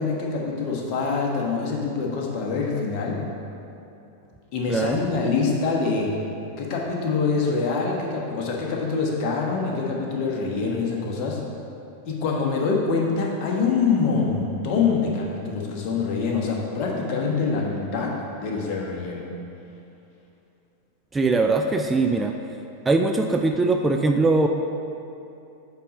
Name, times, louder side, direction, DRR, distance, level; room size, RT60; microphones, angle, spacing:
voice 1, 0.0-3.2 4.5-6.1 6.6-11.4 12.0-19.2, left 4 dB, 40° left, -1 dB, 1.2 m, -25 dB
voice 2, 21.1-22.3 22.9-24.5, right 3 dB, 15° right, 4 dB, 0.3 m, -21 dB
8.2 x 4.2 x 5.0 m, 2.7 s
figure-of-eight pair, 90°, 0 cm